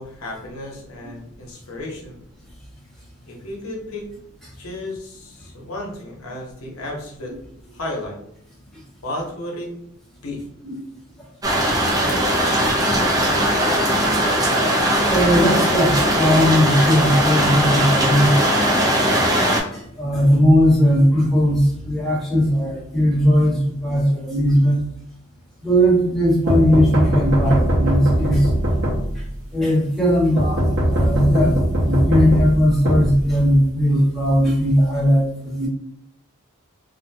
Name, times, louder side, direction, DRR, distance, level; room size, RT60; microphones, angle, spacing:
voice 1, 0.0-2.2 3.2-4.1 4.6-7.4 7.7-8.2 9.0-9.7 10.2-10.4, left 1 dB, 80° left, -1 dB, 0.8 m, -33 dB
sound 1, 11.4-19.6, right 1 dB, 15° right, 0.5 m, -19 dB
voice 2, 15.1-18.4 19.7-24.8 25.6-28.5 29.5-30.6 30.9-35.7, equal, ahead, -6 dB, 1.0 m, -18 dB
sound 2, 26.5-29.4 30.4-33.7, equal, 65° right, 0.9 m, -21 dB
2.5 x 2.2 x 2.7 m, 0.75 s
head